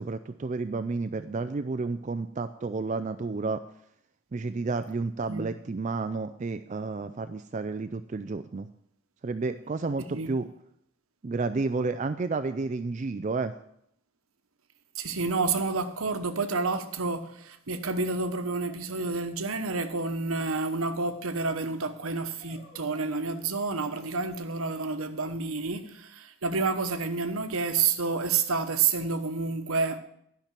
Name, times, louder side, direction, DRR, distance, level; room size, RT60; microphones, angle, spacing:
voice 1, 0.0-3.6 4.3-8.7 9.2-10.5 11.2-13.5, right 3 dB, 35° right, 0.4 m, -31 dB
voice 2, 15.0-30.0, right 4 dB, 85° right, 1.0 m, -29 dB
sound 1, 18.7-19.6 22.4-24.1, left 2 dB, 25° left, 2.9 m, -55 dB
12.0 x 5.9 x 7.4 m
head